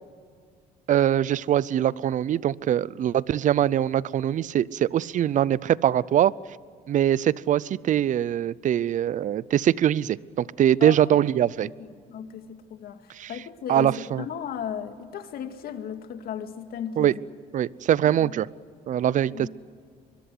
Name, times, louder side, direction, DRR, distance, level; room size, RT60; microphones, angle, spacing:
voice 1, 0.9-6.3 6.9-11.7 13.1-13.3 13.7-14.3 17.0-17.1 17.5-18.5 18.9-19.5, right 11 dB, 50° right, 22 dB, 0.6 m, -23 dB
voice 2, 10.8-11.2 11.6-11.7 12.1-13.0 13.3-17.2 18.0-18.3 19.1-19.5, left 8 dB, 65° left, 7 dB, 2.1 m, -35 dB
24.0 x 22.5 x 7.9 m, 2.1 s
cardioid pair, 110°, 17 cm